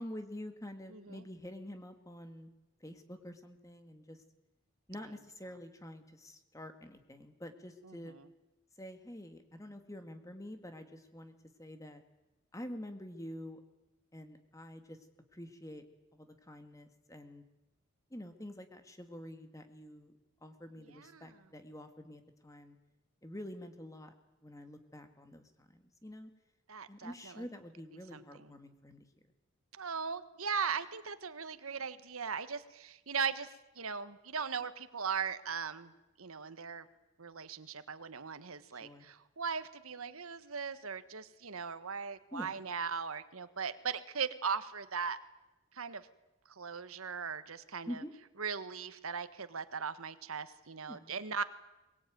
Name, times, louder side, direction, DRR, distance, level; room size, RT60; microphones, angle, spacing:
voice 1, 0.0-2.5 2.8-4.2 4.9-8.1 8.8-12.0 12.5-13.6 14.1-15.0 15.3-15.8 16.1-17.4 18.1-20.1 20.4-22.8 23.2-24.1 24.4-26.3 26.9-29.1 38.8-39.1 42.3-42.5 47.9-48.1 50.8-51.1, left 1 dB, 15° left, 7 dB, 1.9 m, -47 dB
voice 2, 0.9-1.2 7.8-8.3 20.8-21.4 26.7-27.5 28.1-28.5 29.8-35.9 36.2-36.9 37.2-45.2 45.7-46.1 46.6-48.0 48.4-51.4, right 6 dB, 80° right, 12 dB, 1.3 m, -39 dB
23.0 x 21.0 x 9.3 m, 1.0 s
head